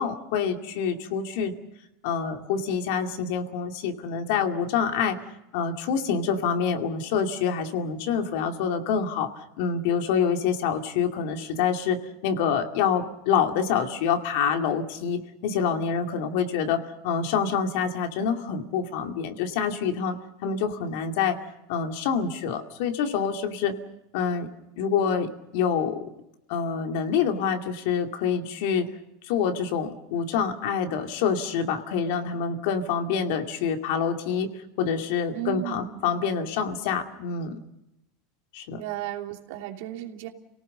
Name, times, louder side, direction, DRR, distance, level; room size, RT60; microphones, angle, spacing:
voice 1, 0.0-1.5 2.0-5.2 5.5-9.3 9.6-20.2 20.4-21.4 21.7-23.7 24.1-24.5 24.8-26.1 26.5-28.9 29.3-34.5 34.8-37.6 38.5-38.8, left 7 dB, 60° left, 5 dB, 2.4 m, -26 dB
voice 2, 35.3-36.0 38.8-40.3, right 14 dB, 65° right, 3 dB, 2.8 m, -34 dB
30.0 x 18.0 x 6.7 m, 0.88 s
supercardioid pair, 165°, 0 cm